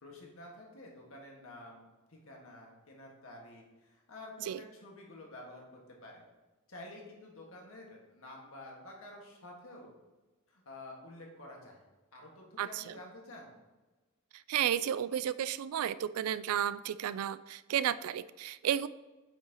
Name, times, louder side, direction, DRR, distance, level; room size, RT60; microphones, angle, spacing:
voice 1, 0.0-6.2 6.7-10.0 10.5-11.8 12.1-13.6, left 1 dB, 70° left, -1 dB, 1.6 m, -50 dB
voice 2, 12.6-12.9 14.5-18.9, right 10 dB, 80° right, 15 dB, 0.3 m, -32 dB
8.5 x 5.6 x 2.9 m, 1.2 s
head